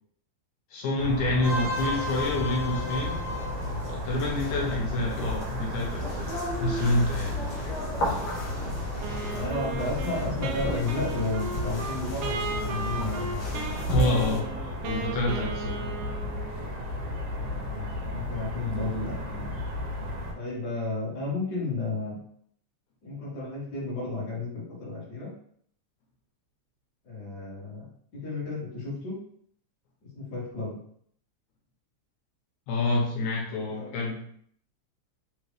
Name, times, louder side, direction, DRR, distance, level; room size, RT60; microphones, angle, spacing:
voice 1, 0.7-3.2 3.9-6.3 6.6-7.4 8.0-8.2 13.9-15.9 32.7-34.2, left 2 dB, 85° left, -1 dB, 2.3 m, -28 dB
sound 1, 1.0-20.3, left 1 dB, 70° right, 1.6 m, -34 dB
sound 2, 1.4-14.4, equal, 60° left, 1.4 m, -35 dB
Wind instrument woodwind instrument, 9.0-16.7, right 4 dB, 85° right, 1.3 m, -36 dB
voice 2, 9.3-14.4 17.3-19.6 20.3-22.1 23.0-25.3 27.0-27.9 28.1-29.2 30.2-30.8 33.7-33.9, left 3 dB, 35° left, -7 dB, 2.1 m, -33 dB
5.2 x 3.0 x 3.2 m, 0.65 s
omnidirectional pair, 3.3 m